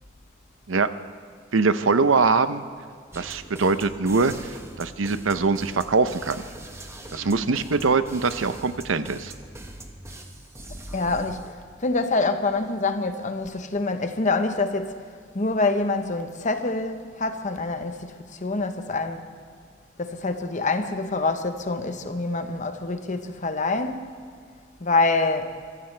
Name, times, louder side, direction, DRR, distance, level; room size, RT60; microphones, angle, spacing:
voice 1, 1.5-2.6 3.1-6.4 7.1-9.3, right 4 dB, 90° right, 12 dB, 0.7 m, -23 dB
sound 1, 3.1-11.5, right 1 dB, 15° right, 1.1 m, -41 dB
voice 2, 10.9-11.5 11.8-15.0 15.3-19.3 20.0-24.1 24.8-25.5, left 3 dB, 40° left, 8 dB, 1.0 m, -26 dB
24.5 x 15.0 x 3.3 m, 2.1 s
head